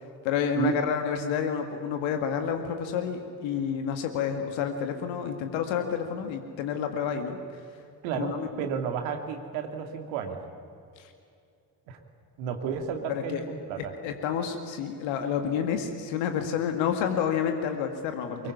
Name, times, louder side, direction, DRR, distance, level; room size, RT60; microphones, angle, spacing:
voice 1, 0.2-7.4 8.1-8.5 13.1-13.4 14.0-18.5, left 7 dB, 70° left, 6 dB, 2.2 m, -29 dB
voice 2, 8.0-10.5 11.9-12.0 12.4-13.9 18.4-18.5, right 7 dB, 75° right, 5 dB, 2.6 m, -32 dB
23.5 x 22.5 x 9.7 m, 2.5 s
figure-of-eight pair, 45°, 48 cm